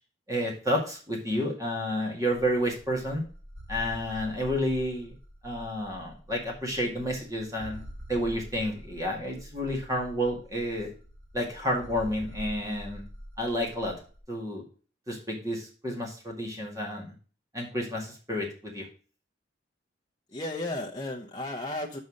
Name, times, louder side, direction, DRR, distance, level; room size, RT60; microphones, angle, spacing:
voice 1, 0.3-3.2 3.7-5.1 5.4-7.8 8.1-10.9 11.3-13.0 13.4-13.9 14.3-14.6 15.1-17.1 17.5-18.8, equal, 20° right, 0 dB, 2.0 m, -30 dB
sound 1, 2.4-14.2, equal, 60° right, 2.2 m, -45 dB
voice 2, 20.3-22.0, left 1 dB, 20° left, 1 dB, 0.7 m, -34 dB
5.6 x 5.4 x 6.2 m, 0.38 s
head